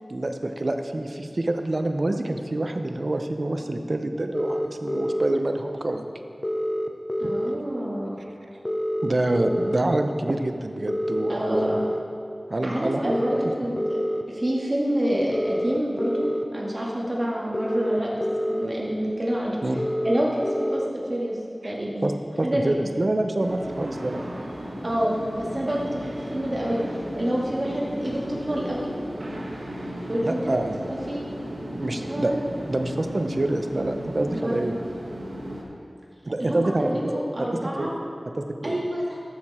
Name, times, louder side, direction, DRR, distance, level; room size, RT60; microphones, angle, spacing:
voice 1, 0.1-6.1 7.2-7.3 9.0-11.7 12.5-13.1 19.6-19.8 21.6-21.7 22.0-24.2 30.2-30.8 31.8-32.3 32.7-34.7 36.3-37.1 37.4-37.5 37.8-37.9 38.4-38.8, right 2 dB, 55° right, 6 dB, 0.7 m, -26 dB
sound 1, 4.3-5.3 6.4-7.6 8.6-9.8 10.9-12.0 13.1-14.2 15.3-16.4 17.5-18.7 19.8-20.9, equal, 30° left, 0.7 m, -27 dB
voice 2, 7.2-8.2 11.3-11.8 12.6-14.0 14.3-19.6 20.0-21.4 21.6-22.1 22.4-22.6 24.8-28.9 30.1-30.6 31.1-31.2 31.9-32.4 34.3-34.6 36.4-37.9 38.6-39.2, equal, 40° right, -4 dB, 2.2 m, -27 dB
sound 2, 23.4-35.6, equal, 75° right, 1.5 m, -35 dB
13.0 x 6.7 x 4.3 m, 2.4 s
wide cardioid pair, 55°, 0 cm